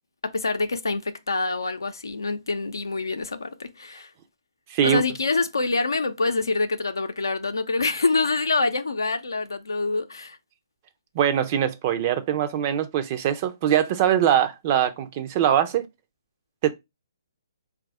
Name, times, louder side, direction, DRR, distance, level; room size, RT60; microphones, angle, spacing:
voice 1, 0.2-4.1 4.8-10.4, left 3 dB, 70° left, 0.6 m, -26 dB
voice 2, 4.7-5.0 11.1-15.9 16.6-16.7, right 10 dB, 30° right, 0.5 m, -22 dB
4.6 x 2.4 x 4.0 m
figure-of-eight pair, 130°, 2 cm